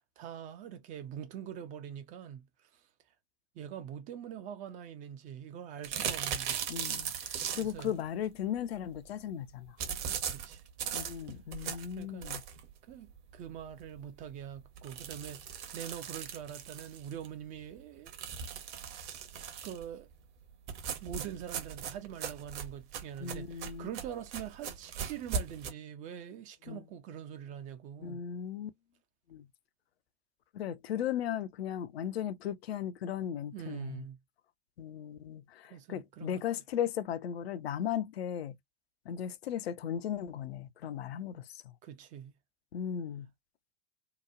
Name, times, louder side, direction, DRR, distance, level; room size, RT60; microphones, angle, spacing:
voice 1, 0.0-2.9 3.5-6.6 7.6-8.0 10.0-10.6 12.0-12.3 12.9-18.2 19.6-20.1 21.0-28.2 33.5-34.2 35.7-36.4 41.8-42.3, right 9 dB, 25° right, 0.4 m, -44 dB
sound 1, 5.8-7.9 9.8-12.7 13.2-13.3 13.6-13.7 14.0-14.1 14.8-17.3 18.1-19.9 20.7-25.7, right 8 dB, 45° right, 0.9 m, -38 dB
voice 2, 6.7-9.8 10.9-12.4 23.2-23.9 26.7-26.8 28.0-28.7 29.3-29.5 30.5-34.0 34.8-38.6 39.1-41.7 42.7-43.3, left 9 dB, 65° left, 0.5 m, -36 dB
2.9 x 2.1 x 2.4 m
figure-of-eight pair, 85°, 34 cm